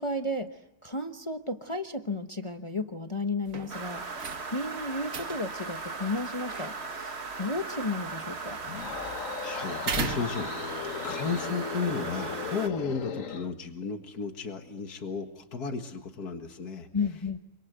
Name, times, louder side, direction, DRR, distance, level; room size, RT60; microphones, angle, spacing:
voice 1, 0.0-8.6 16.9-17.4, left 2 dB, 20° left, 6 dB, 1.0 m, -33 dB
sound 1, 3.4-10.9, right 6 dB, 60° right, 1.7 m, -41 dB
sound 2, 3.7-12.7, right 4 dB, 45° right, 1.8 m, -38 dB
sound 3, 8.6-13.5, left 6 dB, 55° left, 1.5 m, -37 dB
voice 2, 9.4-16.9, left 5 dB, 75° left, 5 dB, 2.2 m, -34 dB
27.5 x 26.0 x 8.1 m, 0.92 s
omnidirectional pair, 1.6 m